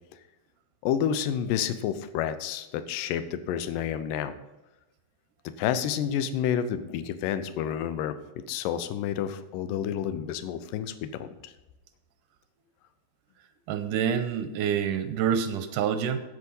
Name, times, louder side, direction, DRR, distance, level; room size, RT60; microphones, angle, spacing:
voice 1, 0.8-4.4 5.6-11.5, left 9 dB, 75° left, 11 dB, 2.2 m, -30 dB
voice 2, 13.7-16.2, right 8 dB, 75° right, 9 dB, 2.1 m, -27 dB
9.7 x 8.1 x 5.4 m, 1.1 s
omnidirectional pair, 4.3 m